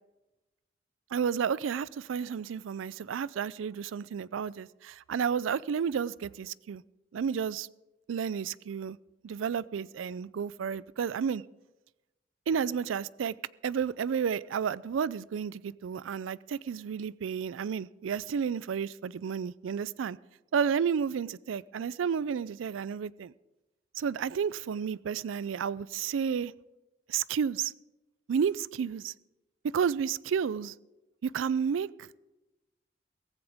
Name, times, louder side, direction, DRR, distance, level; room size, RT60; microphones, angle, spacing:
voice 1, 1.1-6.8 7.1-7.7 8.1-9.0 9.2-11.4 12.5-13.3 13.6-20.2 20.5-23.3 24.0-26.5 27.1-27.7 28.3-29.1 29.6-30.7 31.2-32.1, right 7 dB, 90° right, 21 dB, 0.4 m, -31 dB
17.0 x 15.0 x 3.5 m, 1.0 s
head